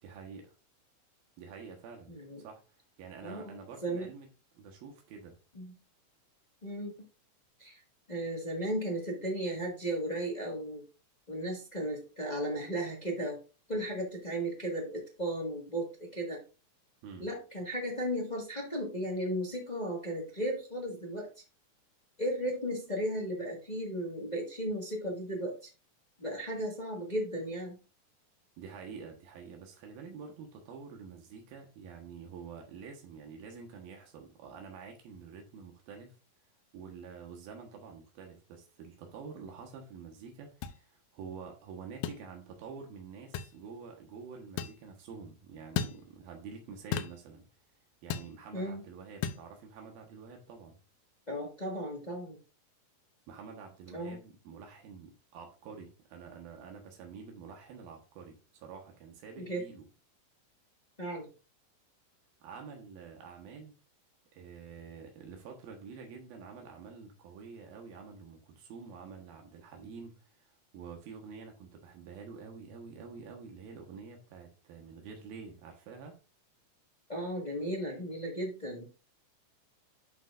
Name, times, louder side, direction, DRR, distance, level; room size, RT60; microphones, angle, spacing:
voice 1, 0.0-0.5 1.4-2.6 3.0-4.3 4.5-5.4 17.0-17.3 28.6-36.1 36.7-47.5 48.0-50.8 53.3-59.8 62.4-63.7 64.3-76.2, right 5 dB, 85° right, 3.2 m, -48 dB
voice 2, 2.1-2.4 3.2-3.5 3.8-4.1 5.5-5.7 6.6-6.9 7.6-7.8 8.1-10.8 11.3-13.4 13.7-16.4 17.2-21.3 22.2-25.7 26.2-27.8 48.5-48.8 51.3-52.4 53.9-54.2 59.4-59.6 61.0-61.3 77.1-79.0, right 1 dB, 30° left, 0.7 m, -35 dB
sound 1, 40.6-40.8 42.0-42.2 43.3-43.5 44.6-44.8 45.8-46.0 46.9-47.2 48.1-48.3 49.2-49.4, left 9 dB, 80° left, 2.2 m, -34 dB
11.0 x 5.5 x 2.5 m
omnidirectional pair, 4.1 m